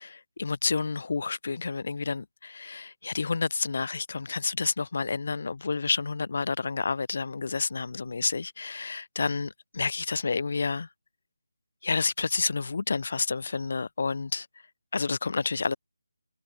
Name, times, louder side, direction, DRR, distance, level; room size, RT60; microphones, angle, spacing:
voice 1, 0.0-10.9 11.8-14.5 14.9-15.8, left 4 dB, 50° left, 7.6 m, -29 dB
figure-of-eight pair, 170°, 0 cm